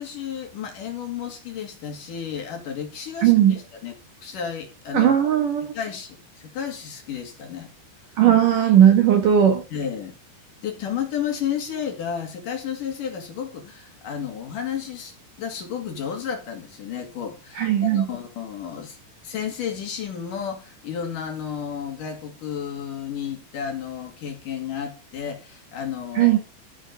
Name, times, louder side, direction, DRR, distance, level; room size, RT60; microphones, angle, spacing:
voice 1, 0.0-5.1 5.7-7.7 9.7-10.1 10.6-19.0 19.2-26.4, left 8 dB, 50° left, 3.4 m, -32 dB
voice 2, 3.2-3.6 4.9-5.7 8.2-9.6 17.6-18.1 26.2-26.4, right 10 dB, 60° right, 2.4 m, -17 dB
13.5 x 8.9 x 5.3 m
omnidirectional pair, 5.3 m